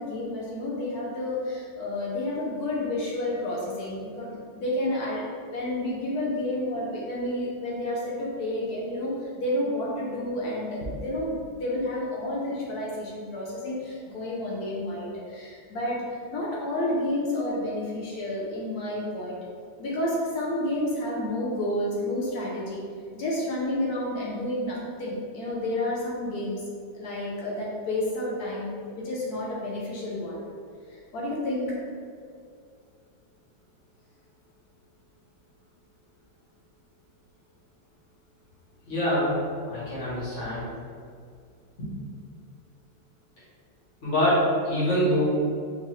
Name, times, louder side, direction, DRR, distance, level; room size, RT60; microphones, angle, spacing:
voice 1, 0.0-5.2 5.5-19.4 19.8-22.8 23.1-26.6 26.9-30.4 30.9-31.8, left 1 dB, 65° left, -5 dB, 1.1 m, -30 dB
voice 2, 38.9-39.4 39.7-40.7 41.8-41.9 44.0-45.2, equal, 40° left, -9 dB, 1.5 m, -25 dB
4.5 x 2.6 x 3.0 m, 2.2 s
omnidirectional pair, 2.1 m